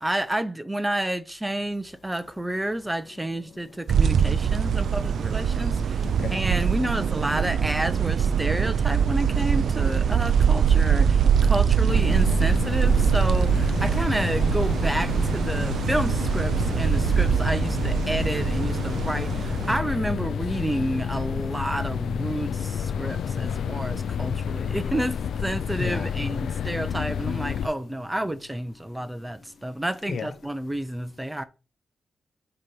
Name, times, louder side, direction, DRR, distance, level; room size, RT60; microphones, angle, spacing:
voice 1, 0.0-31.4, right 1 dB, 10° right, 0.4 m, -30 dB
sound 1, 3.9-19.8, right 7 dB, 75° right, 0.3 m, -23 dB
voice 2, 6.0-6.4 25.8-26.1 30.1-30.3, left 5 dB, 55° left, 0.8 m, -32 dB
sound 2, 11.9-27.7, left 7 dB, 90° left, 0.3 m, -29 dB
8.2 x 2.9 x 5.4 m
wide cardioid pair, 160°, 0 cm